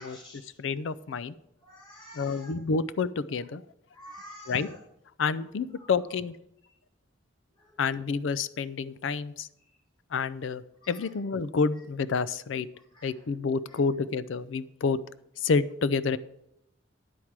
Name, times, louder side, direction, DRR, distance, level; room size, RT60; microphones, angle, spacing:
voice 1, 0.0-0.4 1.6-2.5 3.9-4.7 10.8-10.9 13.0-13.1, left 1 dB, 25° left, -4 dB, 2.2 m, -48 dB
voice 2, 0.6-1.3 2.1-3.6 4.5-4.8 5.2-6.4 7.8-9.5 10.1-12.7 13.0-15.0 15.4-16.2, left 5 dB, 75° left, 16 dB, 0.4 m, -29 dB
10.0 x 4.7 x 7.2 m, 0.81 s
head